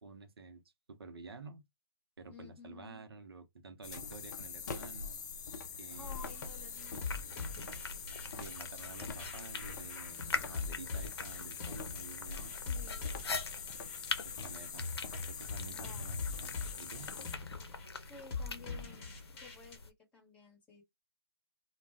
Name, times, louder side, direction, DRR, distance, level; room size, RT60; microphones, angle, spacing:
voice 1, 0.0-0.6 0.9-1.6 2.2-5.2 5.8-6.3 8.4-12.5 14.2-14.9 15.2-17.1, right 3 dB, 70° right, 0.7 m, -51 dB
voice 2, 2.3-3.0 5.9-7.4 12.5-13.3 15.7-16.4 18.1-19.1 19.4-19.8 20.1-20.8, left 4 dB, 10° left, 1.2 m, -54 dB
sound 1, 3.8-17.4, left 5 dB, 45° left, 0.6 m, -44 dB
sound 2, 5.9-19.9, left 4 dB, 80° left, 0.7 m, -44 dB
sound 3, 6.8-19.8, left 4 dB, 30° left, 1.1 m, -43 dB
2.3 x 2.2 x 3.5 m
figure-of-eight pair, 145°, 13 cm